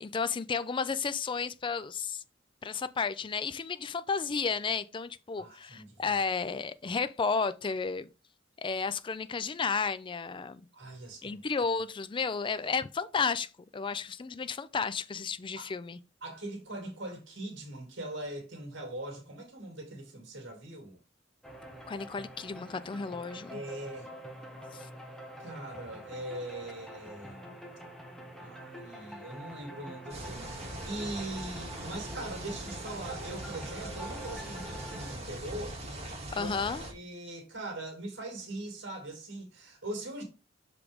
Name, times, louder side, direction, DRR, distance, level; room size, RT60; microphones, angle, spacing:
voice 1, 0.0-2.2 2.6-8.1 8.6-10.6 11.2-16.0 21.9-23.6 24.7-24.9 36.3-36.8, left 5 dB, 25° left, 0.4 m, -32 dB
voice 2, 5.4-6.1 6.8-7.0 10.7-11.4 15.6-15.7 16.2-21.0 23.5-24.1 25.4-27.5 28.4-35.8 36.3-36.5 36.9-40.2, right 1 dB, 90° right, 2.6 m, -41 dB
sound 1, 21.4-35.1, right 1 dB, ahead, 1.0 m, -46 dB
sound 2, 30.1-36.9, right 1 dB, 35° right, 2.2 m, -41 dB
6.3 x 4.9 x 3.5 m
head